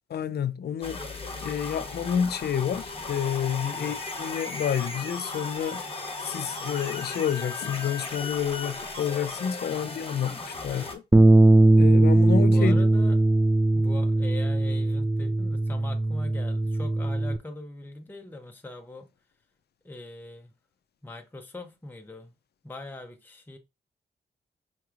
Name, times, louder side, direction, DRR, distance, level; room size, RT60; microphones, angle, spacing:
voice 1, 0.1-1.0 1.4-5.8 6.2-11.0 11.8-12.9, left 8 dB, 65° left, 0.5 m, -29 dB
sound 1, 0.8-10.9, left 3 dB, 30° left, 1.1 m, -36 dB
voice 2, 9.7-10.0 10.7-10.9 12.5-13.2 13.7-19.1 19.8-20.5 21.0-22.3 22.6-23.6, left 2 dB, 10° left, 0.7 m, -42 dB
Bass guitar, 11.1-17.4, right 2 dB, 10° right, 0.4 m, -20 dB
5.8 x 2.9 x 2.4 m
cardioid pair, 75°, 18 cm